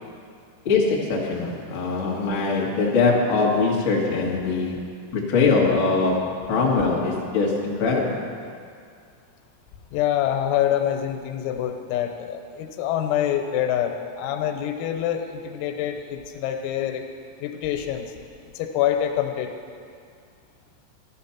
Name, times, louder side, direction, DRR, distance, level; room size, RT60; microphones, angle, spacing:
voice 1, 0.6-4.8 5.1-8.2, left 4 dB, 50° left, -4 dB, 1.4 m, -22 dB
voice 2, 9.9-17.1 17.4-18.1 18.6-19.5, left 10 dB, 90° left, 5 dB, 3.7 m, -26 dB
14.0 x 11.5 x 5.8 m, 2.2 s
omnidirectional pair, 5.9 m